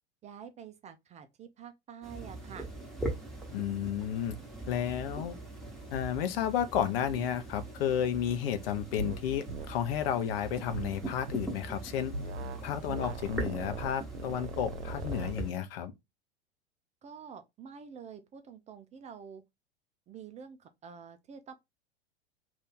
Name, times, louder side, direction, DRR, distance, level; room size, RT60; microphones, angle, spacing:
voice 1, 0.2-2.7 17.0-19.4 20.1-21.5, right 7 dB, 20° right, 0.4 m, -48 dB
sound 1, 2.0-15.5, right 2 dB, ahead, 1.1 m, -41 dB
voice 2, 3.5-4.4 4.7-5.4 5.9-12.1 12.6-15.9, left 9 dB, 60° left, 0.7 m, -32 dB
sound 2, 9.0-9.2 9.5-9.7 10.7-11.5 12.1-12.6 12.9-15.3, right 2 dB, 85° right, 0.7 m, -39 dB
2.7 x 2.5 x 3.6 m
hypercardioid pair, 90°, 33 cm